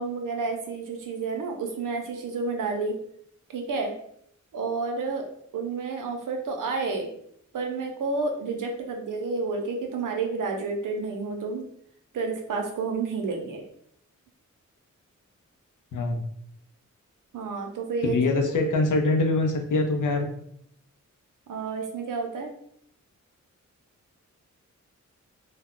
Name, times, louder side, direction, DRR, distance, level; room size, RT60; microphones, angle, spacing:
voice 1, 0.0-3.0 3.5-4.0 4.5-5.3 5.5-7.1 7.5-11.6 12.1-13.6 17.3-18.2 18.5-18.9 21.5-22.5, right 4 dB, 85° right, 3 dB, 0.6 m, -30 dB
voice 2, 15.9-16.2 18.0-20.3, left 3 dB, 80° left, 3 dB, 0.6 m, -24 dB
2.3 x 2.1 x 3.6 m, 0.69 s
wide cardioid pair, 110°, 31 cm